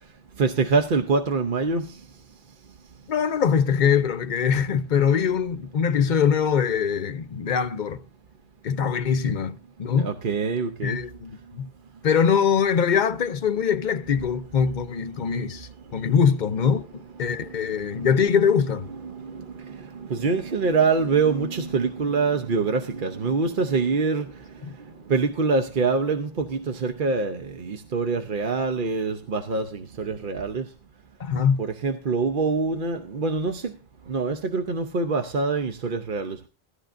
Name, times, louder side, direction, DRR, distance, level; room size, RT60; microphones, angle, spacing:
voice 1, 0.4-1.8 10.0-11.0 19.0-24.3 25.1-30.6 31.6-33.7 34.1-36.5, right 4 dB, 55° right, 1.0 m, -25 dB
voice 2, 3.1-8.0 8.6-10.1 10.8-11.7 12.0-18.9 24.6-24.8 31.2-31.6, left 7 dB, 50° left, 0.8 m, -23 dB
16.0 x 13.0 x 2.6 m
omnidirectional pair, 1.1 m